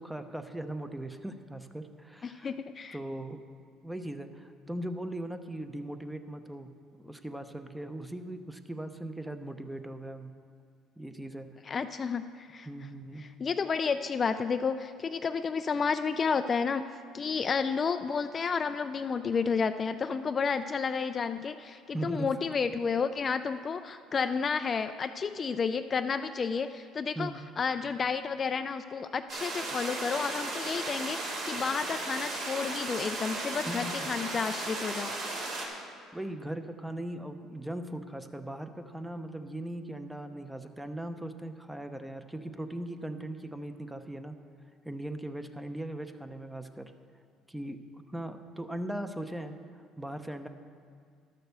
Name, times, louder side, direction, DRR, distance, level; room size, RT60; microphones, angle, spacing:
voice 1, 0.0-2.5 2.9-3.4 3.8-10.3 11.0-11.8 12.7-13.3 21.9-22.3 27.2-27.4 33.7-34.1 36.1-44.3 44.8-46.9 47.5-47.8 48.1-49.5 50.0-50.5, right 1 dB, 5° right, 8 dB, 0.7 m, -39 dB
voice 2, 2.2-3.0 11.6-12.7 13.2-16.9 17.1-35.1, left 5 dB, 35° left, 9 dB, 0.3 m, -31 dB
sound 1, 29.3-35.7, right 2 dB, 65° right, 2.3 m, -35 dB
11.5 x 6.6 x 6.7 m, 2.1 s
supercardioid pair, 90°, 0 cm